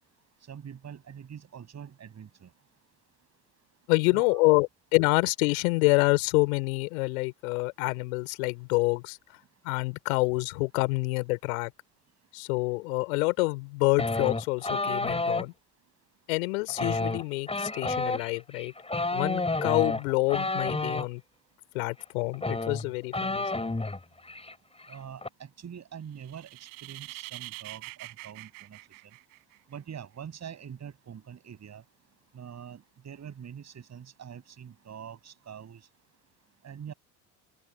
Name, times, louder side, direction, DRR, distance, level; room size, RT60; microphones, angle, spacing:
voice 1, 0.5-2.5 4.1-4.4 24.9-28.8 29.7-31.8 32.3-35.8 36.6-36.9, right 8 dB, 40° right, 7.9 m, -44 dB
voice 2, 3.9-9.2 9.6-11.7 12.3-15.5 16.3-18.7 19.1-21.2 21.7-23.7, left 26 dB, 70° left, 5.3 m, -27 dB
sound 1, 14.0-15.5 16.7-21.1 22.0-22.1 22.3-24.0 24.3-24.5 24.8-25.3, left 2 dB, 15° left, 5.8 m, -30 dB
sound 2, 26.2-29.8, right 40 dB or more, 65° right, 4.3 m, -44 dB
open air
figure-of-eight pair, 65°, 43 cm